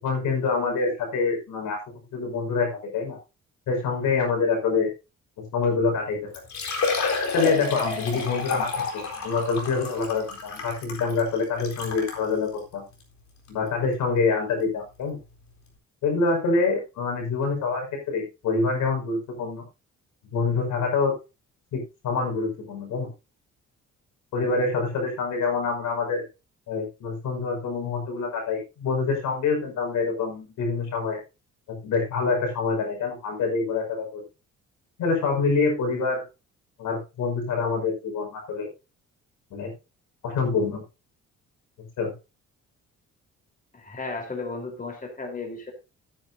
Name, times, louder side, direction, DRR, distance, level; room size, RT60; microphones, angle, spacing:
voice 1, 0.0-1.8 2.1-3.2 3.7-4.9 5.4-6.2 7.3-12.8 13.5-15.2 16.0-19.6 20.3-21.1 21.7-23.1 24.3-26.2 26.7-31.2 31.7-34.2 35.0-36.2 36.8-38.7 39.5-39.7 40.2-40.8 42.0-42.1, left 4 dB, 85° left, 3 dB, 5.4 m, -26 dB
Liquid, 5.9-6.0 6.3-12.2 12.9-13.0 13.5-13.6 15.2-15.3 15.5-15.6, left 3 dB, 65° left, 4.1 m, -30 dB
voice 2, 43.7-45.7, left 3 dB, 30° left, 3 dB, 4.0 m, -34 dB
15.0 x 9.4 x 2.7 m, 0.28 s
cardioid pair, 90°, 30 cm